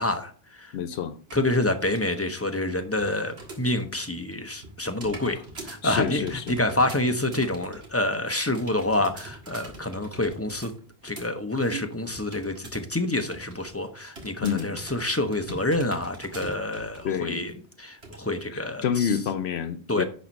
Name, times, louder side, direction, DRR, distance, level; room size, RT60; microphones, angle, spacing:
voice 1, 0.0-0.7 1.3-10.7 11.0-19.2 19.9-20.0, left 1 dB, 15° left, 0.7 m, -27 dB
voice 2, 0.7-1.2 5.3-5.4 5.8-6.5 14.4-14.7 17.0-17.4 18.5-20.0, left 8 dB, 85° left, 0.9 m, -28 dB
sound 1, 1.3-2.2 2.5-3.9 4.2-12.9 13.2-13.7 14.2-17.1 17.5-17.6 18.0-18.2, right 2 dB, 80° right, 2.1 m, -43 dB
10.5 x 4.4 x 5.2 m
omnidirectional pair, 1.1 m